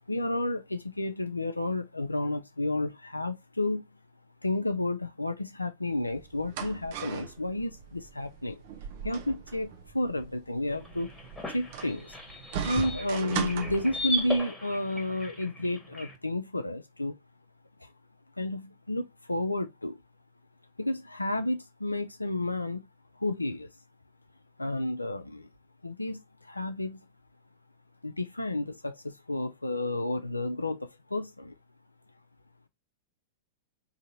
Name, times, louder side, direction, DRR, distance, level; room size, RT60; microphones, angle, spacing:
voice 1, 0.1-3.8 4.4-8.6 9.0-11.1 11.5-12.2 12.6-17.2 17.8-17.9 18.4-20.0 20.8-22.8 23.2-23.7 24.6-25.5 25.8-27.0 28.0-31.5, left 1 dB, 85° left, 0.4 m, -31 dB
sound 1, 5.9-14.4, right 8 dB, 50° right, 0.7 m, -39 dB
sound 2, 10.7-16.2, left 1 dB, 5° left, 1.3 m, -38 dB
3.7 x 2.7 x 4.0 m
figure-of-eight pair, 95°, 0 cm